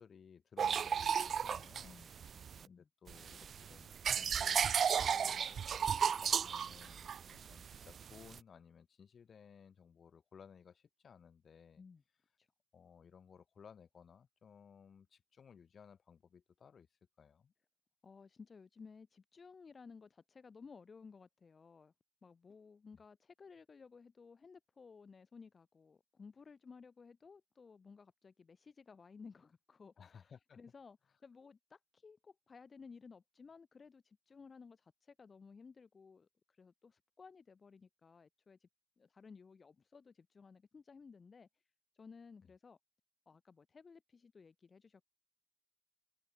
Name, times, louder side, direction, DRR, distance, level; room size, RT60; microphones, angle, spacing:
voice 1, 0.0-2.0 2.7-5.7 6.0-11.8 12.7-16.9 17.2-17.5 30.0-30.6 42.4-42.5, left 7 dB, 60° left, 6.2 m, -59 dB
sound 1, 0.6-2.7 3.1-8.4, right 7 dB, 70° right, 1.1 m, -34 dB
voice 2, 2.3-2.9 11.8-12.0 12.4-12.5 18.0-21.9 22.2-31.0 31.2-38.7 39.0-41.5 41.9-42.8 43.3-45.0, left 5 dB, 45° left, 4.5 m, -57 dB
open air
wide cardioid pair, 120°, 0 cm